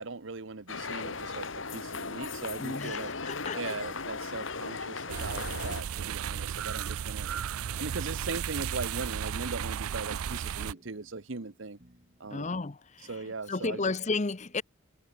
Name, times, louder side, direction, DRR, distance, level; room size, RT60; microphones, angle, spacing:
voice 1, 0.0-1.5 1.7-3.1 3.5-7.3 7.8-11.8 12.2-12.6 13.1-13.9, right 3 dB, 60° right, 1.0 m, -39 dB
sound 1, 0.7-5.8, left 4 dB, 65° left, 2.4 m, -37 dB
voice 2, 2.6-3.8 12.3-13.2 13.5-14.6, left 3 dB, 35° left, 0.7 m, -33 dB
sound 2, 5.1-10.7, right 8 dB, 90° right, 0.5 m, -34 dB
sound 3, 10.6-12.5, equal, 35° right, 5.9 m, -63 dB
head